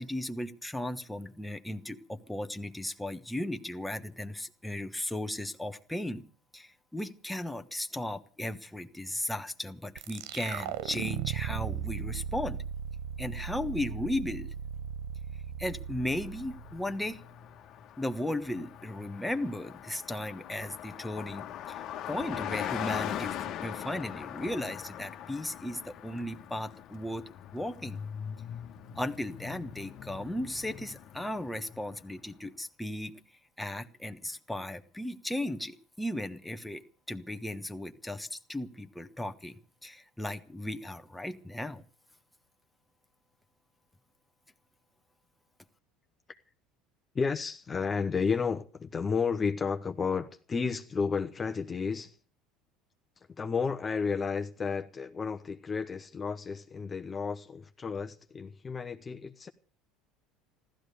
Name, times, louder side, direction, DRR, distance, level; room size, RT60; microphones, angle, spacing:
voice 1, 0.0-6.2 6.5-12.6 13.2-14.5 15.6-17.2 18.0-28.0 28.9-33.1 33.6-36.8 37.1-41.8, left 1 dB, 5° left, 1.3 m, -36 dB
sound 1, 10.0-17.2, right 9 dB, 75° right, 0.7 m, -37 dB
Car passing by, 16.1-32.1, left 10 dB, 55° left, 1.4 m, -41 dB
voice 2, 47.1-52.2 53.4-59.5, left 5 dB, 25° left, 1.0 m, -32 dB
15.0 x 13.0 x 6.7 m
supercardioid pair, 100°, 0 cm